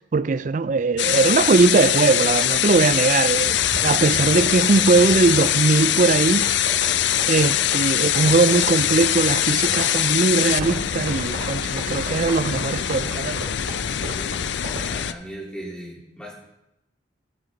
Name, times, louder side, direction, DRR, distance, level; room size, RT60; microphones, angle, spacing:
voice 1, 0.1-3.6 3.8-6.5 7.3-13.4, right 4 dB, 40° right, 0.4 m, -20 dB
sound 1, 1.0-15.1, left 11 dB, 70° left, 0.4 m, -22 dB
sound 2, 3.3-15.0, right 1 dB, 80° right, 3.3 m, -35 dB
voice 2, 13.8-14.4 14.9-16.4, right 1 dB, 5° left, 3.8 m, -38 dB
17.0 x 7.5 x 3.9 m
head